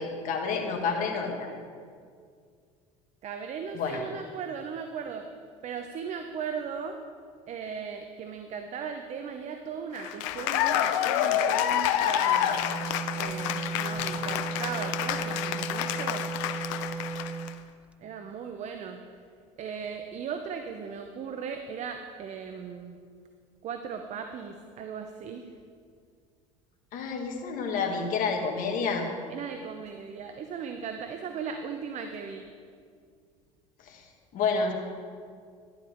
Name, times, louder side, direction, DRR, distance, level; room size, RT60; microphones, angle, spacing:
voice 1, 0.0-1.5 3.7-4.0 26.9-29.1 33.9-34.0 34.3-34.7, left 5 dB, 55° left, 2 dB, 1.9 m, -29 dB
voice 2, 3.2-5.3 5.6-7.0 7.5-12.7 13.2-16.3 18.0-19.0 19.6-23.0 23.6-25.5 29.3-32.5, right 6 dB, 45° right, 6 dB, 0.8 m, -37 dB
Cheering / Applause, 10.0-17.5, left 11 dB, 70° left, 0.6 m, -28 dB
Wind instrument woodwind instrument, 12.4-17.6, right 5 dB, 5° right, 0.4 m, -35 dB
11.5 x 11.0 x 3.6 m, 2.1 s
hypercardioid pair, 75°, 17 cm